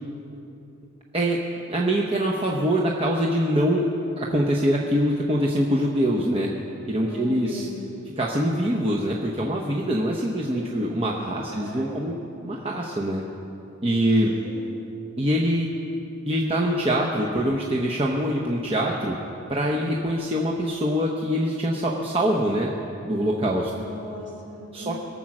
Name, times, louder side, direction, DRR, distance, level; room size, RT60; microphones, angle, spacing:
voice 1, 1.7-3.9 4.3-6.5 6.9-7.7 8.2-12.2 12.4-13.2 13.8-14.3 15.2-15.7 16.3-19.2 19.5-22.7 23.0-23.7 24.7-24.9, equal, 25° right, -2 dB, 0.9 m, -24 dB
voice 2, 7.0-7.8 10.5-10.9 11.5-12.1 14.2-14.7 23.7-24.9, left 1 dB, 50° right, -1 dB, 2.9 m, -38 dB
22.5 x 7.5 x 6.1 m, 2.8 s
head